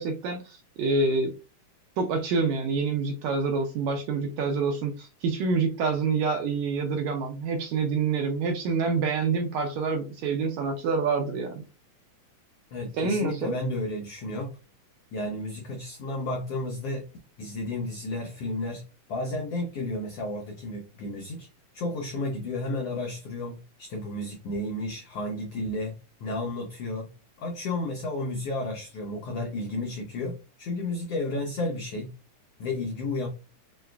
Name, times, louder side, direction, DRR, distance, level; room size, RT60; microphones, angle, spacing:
voice 1, 0.0-1.3 2.0-11.6 13.0-13.6, right 4 dB, 80° right, 4 dB, 1.7 m, -27 dB
voice 2, 12.7-14.5 15.1-17.1 17.4-18.8 19.1-21.5 21.7-27.1 27.4-32.1 32.6-33.3, left 2 dB, 85° left, 1 dB, 1.3 m, -32 dB
6.4 x 2.3 x 2.2 m, 0.31 s
omnidirectional pair, 3.7 m